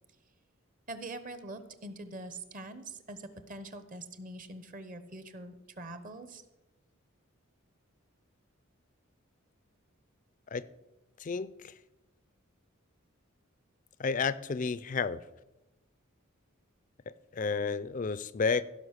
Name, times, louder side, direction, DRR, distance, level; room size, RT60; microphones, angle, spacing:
voice 1, 0.9-6.4, right 2 dB, 40° right, 0.9 m, -44 dB
voice 2, 11.2-11.7 14.0-15.2 17.1-18.6, left 5 dB, 35° left, 0.4 m, -31 dB
15.5 x 5.8 x 6.5 m
head